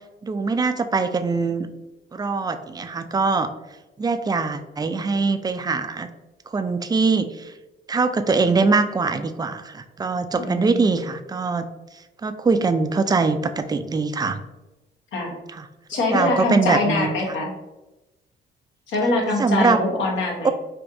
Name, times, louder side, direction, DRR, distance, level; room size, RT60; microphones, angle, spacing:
voice 1, 0.2-1.7 2.1-3.5 4.0-6.1 6.5-7.5 7.9-11.6 12.2-14.4 15.5-15.7 16.1-17.1 19.4-19.8 20.4-20.5, right 4 dB, 20° right, 9 dB, 0.3 m, -22 dB
voice 2, 10.4-10.8 15.1-15.3 15.9-17.5 18.9-20.5, left 2 dB, 75° left, -1 dB, 1.1 m, -23 dB
4.5 x 2.7 x 2.6 m, 1.0 s
cardioid pair, 90°, 20 cm